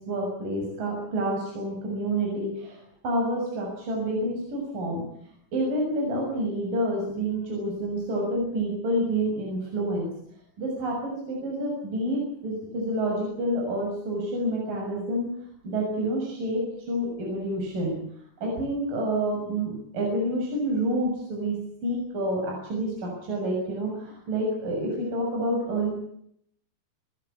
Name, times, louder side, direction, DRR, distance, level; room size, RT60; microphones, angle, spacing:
voice 1, 0.0-5.0 5.5-10.1 10.6-15.3 15.6-18.0 18.4-25.9, right 1 dB, 50° right, -1 dB, 8.6 m, -28 dB
28.5 x 16.0 x 8.5 m, 0.70 s
omnidirectional pair, 5.0 m